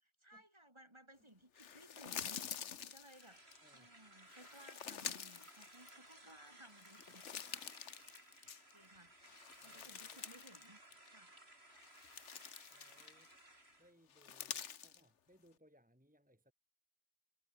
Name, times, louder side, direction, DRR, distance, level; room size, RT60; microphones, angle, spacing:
voice 1, 0.2-3.4 3.7-7.3 8.3-9.2 9.6-10.8 11.1-11.3, right 1 dB, 20° right, 3.7 m, -61 dB
sound 1, 1.6-3.6 4.3-6.3 6.7-8.9 9.2-10.7 10.9-11.1 11.7-13.4 14.1-15.0, left 8 dB, 65° left, 1.4 m, -48 dB
sound 2, 3.0-13.9, right 1 dB, 55° right, 6.4 m, -61 dB
voice 2, 3.6-4.0 9.6-10.2 12.7-13.3 13.8-16.5, equal, 5° right, 2.6 m, -69 dB
omnidirectional pair, 1.3 m